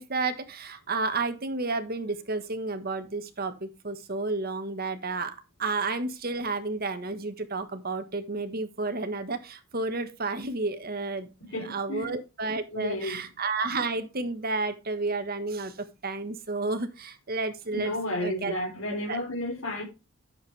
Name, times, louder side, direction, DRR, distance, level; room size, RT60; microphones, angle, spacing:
voice 1, 0.0-11.3 11.6-15.8 16.0-17.9 18.2-18.5 19.1-19.2, right 3 dB, 45° right, 1.4 m, -31 dB
voice 2, 11.4-12.1 12.7-13.2 17.7-19.8, left 1 dB, 70° left, 3.5 m, -32 dB
11.0 x 7.4 x 3.3 m
head